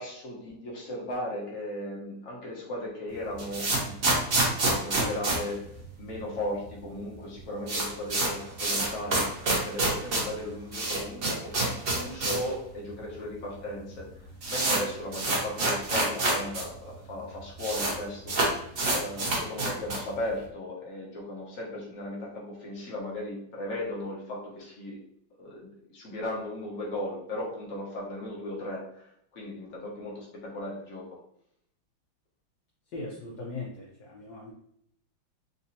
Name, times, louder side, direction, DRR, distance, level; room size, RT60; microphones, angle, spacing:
voice 1, 0.0-4.2 4.6-5.6 6.0-9.3 9.6-18.3 18.9-25.0 25.4-29.0 29.3-31.1, left 1 dB, 50° left, -4 dB, 1.3 m, -36 dB
sound 1, 3.1-6.4 6.6-6.7 7.0-7.1 7.3-12.5 12.8-12.9 13.6-13.7 13.9-16.6 16.9-17.0 17.2-17.9 18.2-20.1, right 2 dB, 60° right, 0.6 m, -27 dB
voice 2, 32.9-34.5, left 3 dB, 65° left, -2 dB, 1.1 m, -39 dB
4.0 x 2.7 x 2.7 m, 0.72 s
omnidirectional pair, 2.2 m